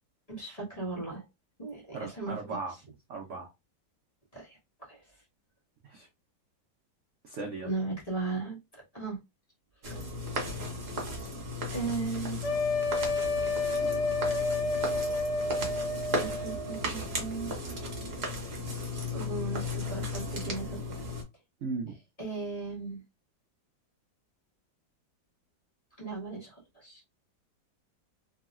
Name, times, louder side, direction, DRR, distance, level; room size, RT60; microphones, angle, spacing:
voice 1, 0.3-1.2 1.6-2.3 4.3-4.6 4.9-5.0 7.6-8.6 8.9-9.2 9.9-10.0 11.7-12.4 16.2-17.5 19.1-20.8 22.2-23.0 26.0-27.0, right 3 dB, 25° left, 1.2 m, -36 dB
voice 2, 1.9-2.8 3.1-3.5 5.8-6.1 7.2-7.7 13.8-14.0 21.6-21.9, right 4 dB, 75° right, 0.7 m, -37 dB
sound 1, 9.8-21.2, left 1 dB, 45° right, 1.0 m, -35 dB
sound 2, 12.4-16.8, left 3 dB, 80° left, 0.6 m, -30 dB
3.1 x 2.8 x 2.4 m
omnidirectional pair, 2.0 m